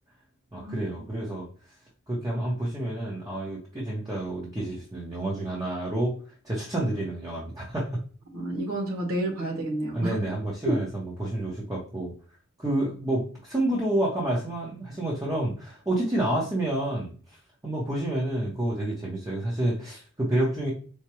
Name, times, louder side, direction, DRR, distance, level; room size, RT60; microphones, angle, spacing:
voice 1, 0.5-1.5 2.1-6.1 6.4-8.0 9.9-12.1 12.6-17.1 17.6-20.7, right 1 dB, 15° right, -4 dB, 0.8 m, -29 dB
voice 2, 8.3-10.2 10.6-10.8, right 1 dB, 85° right, 1 dB, 1.2 m, -29 dB
4.7 x 2.2 x 2.9 m, 0.41 s
head